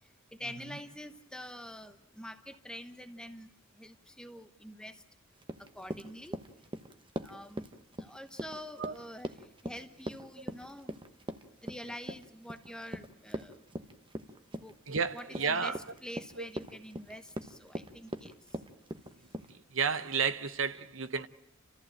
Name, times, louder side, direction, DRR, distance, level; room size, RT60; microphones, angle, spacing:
voice 1, 0.3-3.5 3.7-5.0 5.7-6.4 7.2-9.4 9.6-10.9 11.6-13.6 14.5-14.8 15.1-18.3, equal, 5° left, 1.0 m, -46 dB
Run, 5.4-19.5, right 1 dB, 25° right, 1.0 m, -41 dB
voice 2, 14.9-15.8 16.4-16.5 19.5-21.3, right 5 dB, 75° right, 0.9 m, -32 dB
29.5 x 14.5 x 9.0 m
head